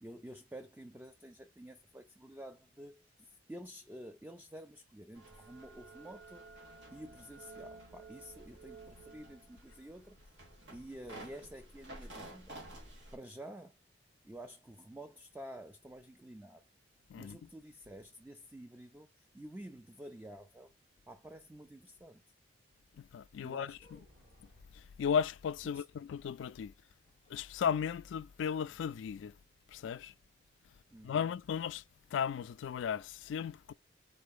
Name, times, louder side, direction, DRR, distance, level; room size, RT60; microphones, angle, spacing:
voice 1, 0.0-6.4 6.9-10.2 10.7-12.6 13.1-13.8 14.2-16.6 17.2-20.7 21.1-22.2 23.4-23.8 25.6-25.8 30.9-31.3, right 1 dB, 10° right, 0.3 m, -50 dB
sound 1, 5.1-13.2, right 2 dB, 75° right, 1.9 m, -52 dB
voice 2, 23.0-24.0 24.7-26.7 27.3-29.4 29.7-30.1 31.0-31.8 32.1-33.7, left 7 dB, 85° left, 0.3 m, -35 dB
sound 2, 23.7-25.1 26.9-27.8 28.1-28.2 28.6-28.9, left 1 dB, 60° right, 2.2 m, -64 dB
4.2 x 3.3 x 3.7 m
head